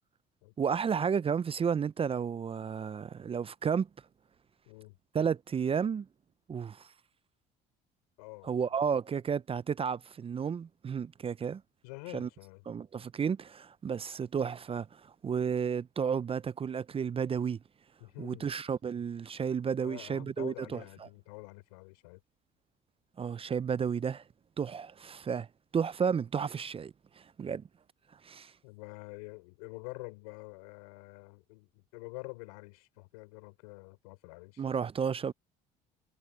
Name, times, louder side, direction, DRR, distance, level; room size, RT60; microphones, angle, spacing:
voice 1, 0.6-3.9 5.1-6.1 6.5-6.9 8.4-11.6 12.1-12.3 12.7-17.6 18.2-20.8 23.2-24.2 24.6-25.5 25.7-27.6 28.2-28.5 34.6-35.3, right 7 dB, 30° right, 0.5 m, -32 dB
voice 2, 4.7-5.0 8.2-8.8 11.8-12.7 18.0-18.5 19.8-22.2 28.6-34.7, left 27 dB, 85° left, 5.6 m, -47 dB
supercardioid pair, 75°, 19 cm